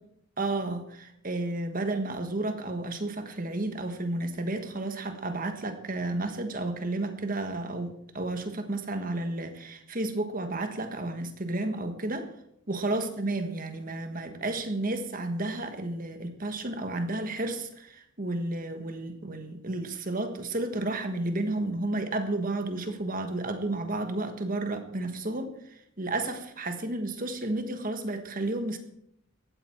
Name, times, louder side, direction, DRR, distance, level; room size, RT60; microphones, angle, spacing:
voice 1, 0.4-12.3 12.7-25.6 26.0-28.8, right 2 dB, 40° right, 7 dB, 1.5 m, -32 dB
16.5 x 13.0 x 4.5 m, 0.74 s
head